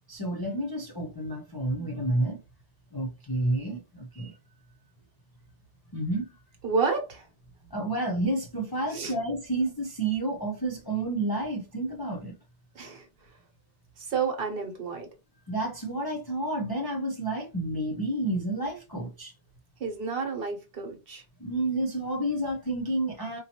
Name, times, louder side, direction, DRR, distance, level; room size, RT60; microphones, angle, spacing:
voice 1, 0.1-2.4 2.9-4.4 5.9-6.4 7.7-12.3 15.5-19.3 21.4-23.4, right 1 dB, 30° left, 0.4 m, -30 dB
voice 2, 6.6-7.3 8.9-9.1 12.7-13.1 14.0-15.1 19.8-21.2, right 5 dB, 55° right, 1.0 m, -30 dB
4.0 x 2.2 x 2.8 m
omnidirectional pair, 1.2 m